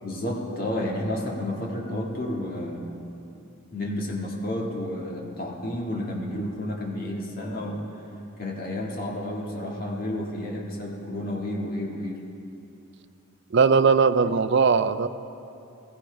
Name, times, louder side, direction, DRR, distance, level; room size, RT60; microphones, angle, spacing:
voice 1, 0.0-2.8 3.7-7.8 8.4-12.2, left 1 dB, 45° left, -1 dB, 1.8 m, -31 dB
voice 2, 13.5-15.1, right 5 dB, 55° right, 11 dB, 0.4 m, -19 dB
15.5 x 15.0 x 3.4 m, 2.7 s
head